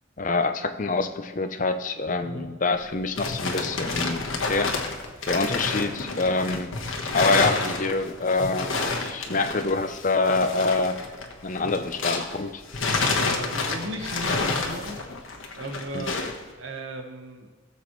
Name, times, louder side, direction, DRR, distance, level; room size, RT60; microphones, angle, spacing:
voice 1, 0.2-4.7 5.2-6.7 7.1-8.7 9.0-11.0 11.4-12.6 15.9-16.1, left 3 dB, 40° left, 8 dB, 0.7 m, -26 dB
sound 1, 2.8-12.4 12.7-16.4, left 3 dB, 85° left, 1.4 m, -29 dB
voice 2, 13.1-15.0 15.5-17.5, right 1 dB, 75° right, 4 dB, 1.4 m, -36 dB
17.5 x 7.3 x 3.2 m, 1.4 s
head